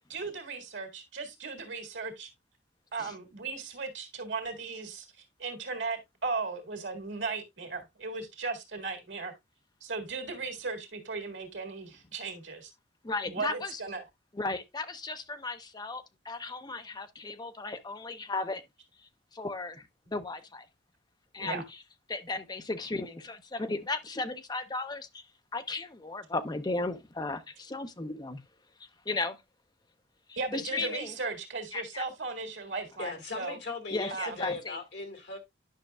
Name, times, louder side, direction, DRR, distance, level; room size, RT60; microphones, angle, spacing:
voice 1, 0.1-2.3 2.9-5.1 5.4-9.3 9.8-12.7 13.3-14.0 21.4-21.6 30.4-33.6 34.1-34.4, right 4 dB, 85° right, 1.9 m, -36 dB
voice 2, 13.0-13.8 14.3-18.6 19.3-20.7 21.3-21.6 22.1-25.2 25.5-28.4 29.1-29.4 30.5-31.1 31.7-32.1 33.9-34.8, left 3 dB, 20° left, 0.5 m, -35 dB
voice 3, 33.0-35.4, left 3 dB, 70° left, 1.9 m, -38 dB
10.0 x 5.7 x 2.3 m
head